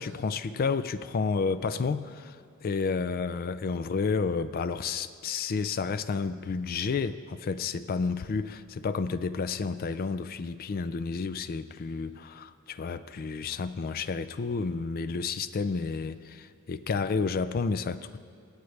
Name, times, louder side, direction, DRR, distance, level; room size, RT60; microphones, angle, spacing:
voice 1, 0.0-2.4 2.6-18.2, left 5 dB, 40° left, 14 dB, 0.4 m, -31 dB
24.5 x 8.2 x 3.3 m, 2.2 s
head